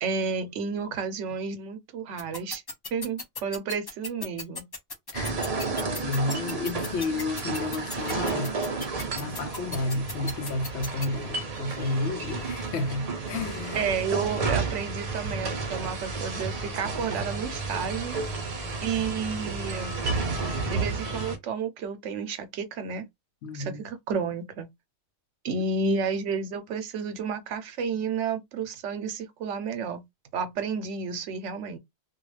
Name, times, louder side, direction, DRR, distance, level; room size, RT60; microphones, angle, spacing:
voice 1, 0.0-2.6 2.9-4.7 13.8-18.2 18.8-20.0 20.7-23.1 23.5-24.7 25.4-30.0 30.3-31.8, right 5 dB, 85° right, 1.0 m, -31 dB
sound 1, 2.2-11.1, left 3 dB, 40° left, 0.3 m, -35 dB
sound 2, 5.1-21.4, right 4 dB, 40° right, 0.6 m, -32 dB
voice 2, 5.8-8.5 9.2-13.8 23.4-23.8, left 2 dB, 70° left, 0.8 m, -31 dB
2.3 x 2.3 x 3.1 m
omnidirectional pair, 1.2 m